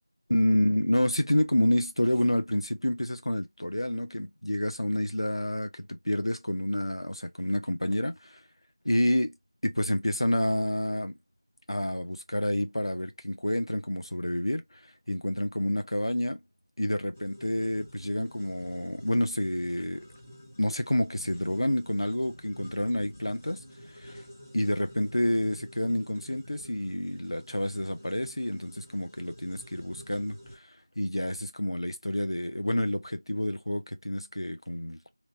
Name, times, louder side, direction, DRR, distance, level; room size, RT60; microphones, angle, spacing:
voice 1, 0.3-8.4 8.8-9.3 9.6-11.2 11.7-14.6 15.1-16.4 16.8-20.1 20.6-23.6 24.0-24.2 24.5-30.4 31.0-35.1, left 1 dB, 85° left, 0.7 m, -28 dB
sound 1, 17.1-30.6, equal, 15° left, 0.4 m, -49 dB
3.0 x 2.1 x 2.6 m
figure-of-eight pair, 175°, 3 cm